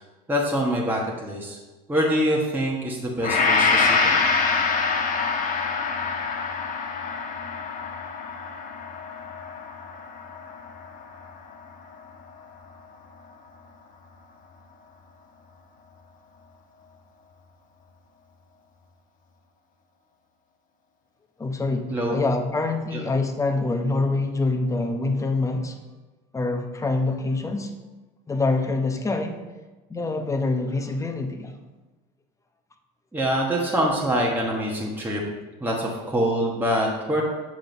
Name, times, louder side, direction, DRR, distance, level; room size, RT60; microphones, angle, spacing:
voice 1, 0.3-1.6 1.9-4.2 21.9-22.2 22.9-23.0 33.1-35.2 35.6-37.2, equal, 10° right, -3 dB, 1.2 m, -25 dB
Gong, 3.2-11.5 12.0-12.2, left 4 dB, 45° left, 1.0 m, -25 dB
voice 2, 21.4-25.8 26.3-27.7 28.3-29.4 29.9-31.5, left 3 dB, 15° left, 5 dB, 0.8 m, -25 dB
7.6 x 3.8 x 5.0 m, 1.2 s
supercardioid pair, 100°, 19 cm